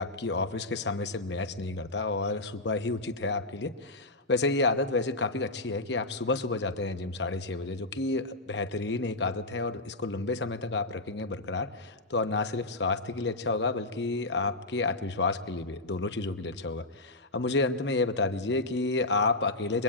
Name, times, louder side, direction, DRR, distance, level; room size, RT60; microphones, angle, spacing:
voice 1, 0.0-19.8, left 3 dB, 70° left, 9 dB, 1.1 m, -30 dB
24.0 x 21.5 x 8.9 m, 1.3 s
head